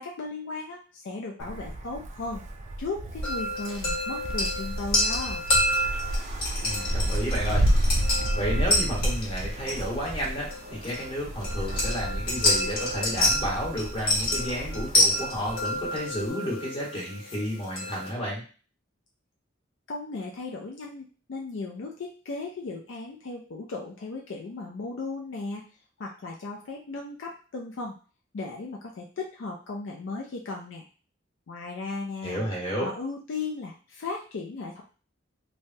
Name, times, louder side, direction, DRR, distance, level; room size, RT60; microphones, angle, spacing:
voice 1, 0.0-2.4 2.8-5.4 19.9-25.6 26.0-28.0 28.3-30.8 31.5-32.4 32.8-34.8, left 3 dB, 65° left, -1 dB, 0.4 m, -36 dB
Wind, 1.4-16.3, right 1 dB, 35° right, 0.3 m, -31 dB
sound 1, 3.2-18.1, left 1 dB, 50° left, 1.1 m, -29 dB
voice 2, 6.6-7.6 8.3-18.4 32.2-32.9, equal, 25° left, -4 dB, 1.2 m, -31 dB
3.2 x 2.1 x 2.7 m, 0.38 s
head